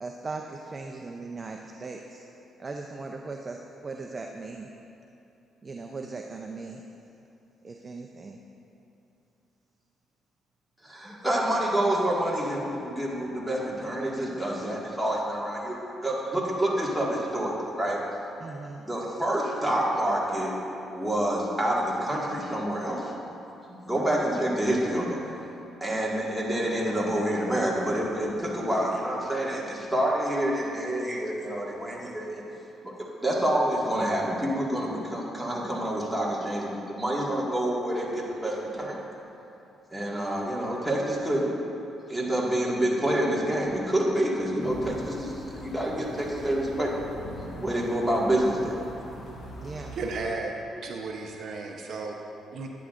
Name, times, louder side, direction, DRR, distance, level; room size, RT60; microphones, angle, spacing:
voice 1, 0.0-2.2 2.6-4.7 5.6-6.8 7.6-8.4 18.4-18.8 24.0-24.1 49.6-49.9, right 3 dB, 35° right, 2 dB, 0.5 m, -38 dB
voice 2, 10.8-18.0 18.9-20.5 20.9-23.1 23.7-25.2 25.8-32.4 32.8-32.9 33.2-39.0 39.9-41.5 42.1-46.9 47.6-48.7, right 1 dB, 5° right, -5 dB, 1.8 m, -27 dB
sound 1, 44.6-50.3, equal, 75° left, 1.5 m, -42 dB
voice 3, 50.0-50.5 50.8-52.2 52.5-52.7, right 3 dB, 60° right, 1 dB, 0.8 m, -34 dB
11.5 x 9.5 x 2.5 m, 2.8 s
cardioid pair, 90°, 0 cm